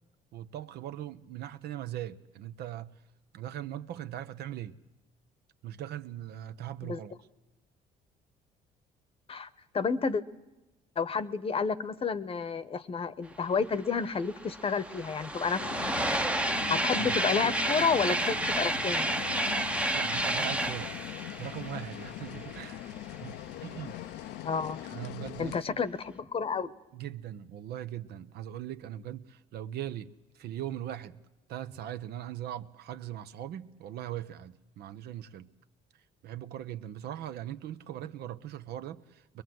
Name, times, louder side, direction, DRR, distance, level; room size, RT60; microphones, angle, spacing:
voice 1, 0.3-2.9 3.3-4.8 5.6-7.1 17.0-17.2 19.9-20.9 21.4-22.9 23.2-24.0 24.8-25.8 26.9-31.2 31.5-35.5 36.2-39.4, right 11 dB, 70° right, 0.9 m, -40 dB
voice 2, 9.7-10.2 11.0-15.7 16.7-19.1 24.4-24.8 25.4-26.7, left 5 dB, 35° left, 0.9 m, -30 dB
sound 1, 13.8-13.9 14.1-22.7, right 1 dB, 5° right, 0.8 m, -31 dB
sound 2, 15.6-25.6, left 13 dB, 85° left, 0.7 m, -41 dB
22.5 x 22.0 x 7.8 m
cardioid pair, 110°, 17 cm